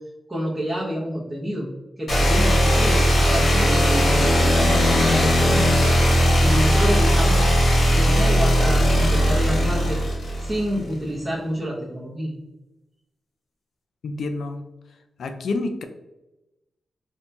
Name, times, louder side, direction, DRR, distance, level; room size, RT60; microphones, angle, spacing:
voice 1, 0.3-1.7 2.0-5.8 6.4-7.5 7.9-10.0 10.4-12.3, equal, 10° right, -8 dB, 0.9 m, -28 dB
sound 1, 2.1-10.8, equal, 55° left, 1.4 m, -18 dB
voice 2, 14.0-14.6 15.2-15.8, left 3 dB, 80° left, 7 dB, 0.4 m, -28 dB
2.9 x 2.7 x 3.3 m, 0.99 s
wide cardioid pair, 115°, 0 cm